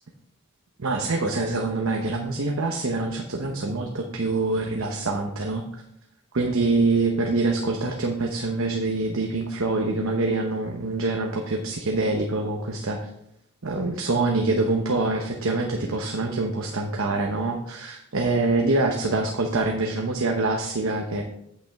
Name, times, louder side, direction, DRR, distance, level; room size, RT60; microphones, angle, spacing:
voice 1, 0.8-5.6 6.3-13.0 13.6-21.2, right 3 dB, 80° right, 2 dB, 0.9 m, -25 dB
8.8 x 7.9 x 3.5 m, 0.77 s
head